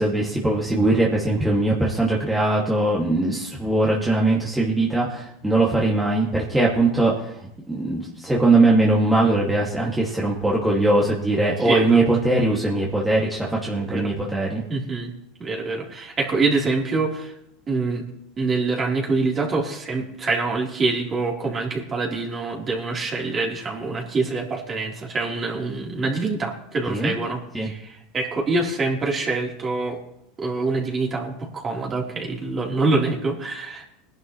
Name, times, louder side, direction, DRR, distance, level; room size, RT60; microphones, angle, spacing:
voice 1, 0.0-7.1 7.7-14.6 26.9-27.1 27.5-27.7, right 2 dB, 5° right, -4 dB, 2.2 m, -21 dB
voice 2, 11.6-12.0 13.9-14.1 14.7-15.1 15.4-17.3 17.7-18.1 18.4-30.0 30.4-33.9, right 3 dB, 25° right, -2 dB, 3.6 m, -25 dB
21.0 x 11.0 x 3.2 m, 0.81 s
supercardioid pair, 120°, 0 cm